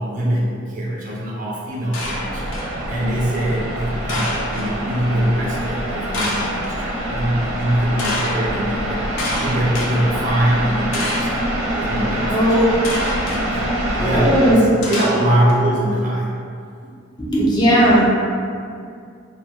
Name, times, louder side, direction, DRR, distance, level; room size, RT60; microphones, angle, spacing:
voice 1, 0.0-11.4 11.7-12.4 12.7-12.8 13.4-13.6 14.0-14.6 14.9-16.3, right 1 dB, 40° right, -5 dB, 0.4 m, -22 dB
sound 1, 1.9-2.8 4.1-4.7 6.1-6.7 8.0-8.4 9.2-9.9 10.9-11.4 12.8-13.4 14.8-15.5, left 1 dB, 90° left, 0.5 m, -27 dB
sound 2, 2.0-14.5, right 1 dB, 90° right, 0.6 m, -25 dB
voice 2, 12.3-12.7 14.0-14.6 17.2-18.1, equal, 20° left, -7 dB, 0.4 m, -16 dB
2.2 x 2.2 x 2.7 m, 2.3 s
head